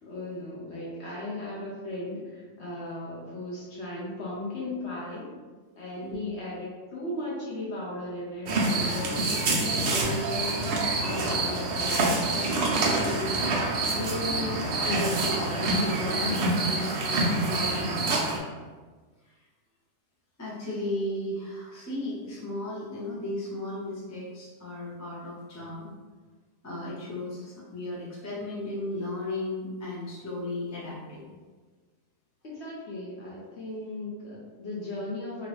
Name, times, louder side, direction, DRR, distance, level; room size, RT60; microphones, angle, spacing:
voice 1, 0.0-5.3 5.8-10.6 11.0-16.6 32.4-35.5, left 2 dB, 55° left, -6 dB, 0.8 m, -36 dB
sound 1, 8.5-18.4, right 2 dB, 80° right, 0.5 m, -26 dB
voice 2, 17.4-18.3 19.2-19.3 20.4-25.9 26.6-31.2, left 1 dB, 20° left, -6 dB, 0.4 m, -35 dB
2.9 x 2.5 x 3.0 m, 1.4 s
omnidirectional pair, 1.6 m